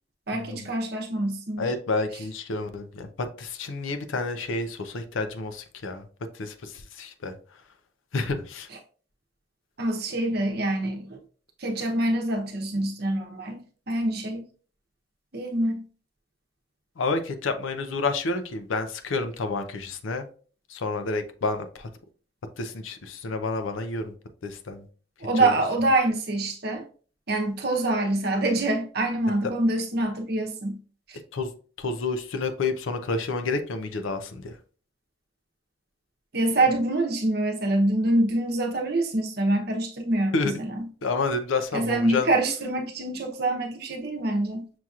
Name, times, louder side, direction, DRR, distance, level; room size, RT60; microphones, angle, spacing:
voice 1, 0.3-1.7 8.7-8.8 9.8-11.2 11.6-14.4 15.3-15.8 25.2-26.9 27.3-30.8 31.1-31.2 36.3-40.9 41.7-44.6, right 2 dB, 50° right, 0.8 m, -25 dB
voice 2, 1.6-6.0 6.4-7.3 8.1-8.7 17.0-20.2 20.7-21.9 22.6-24.1 24.4-24.8 25.4-25.5 31.3-31.5 31.8-34.5 40.3-40.5 41.0-42.3, left 3 dB, 75° left, 0.5 m, -29 dB
6.1 x 2.8 x 2.4 m
head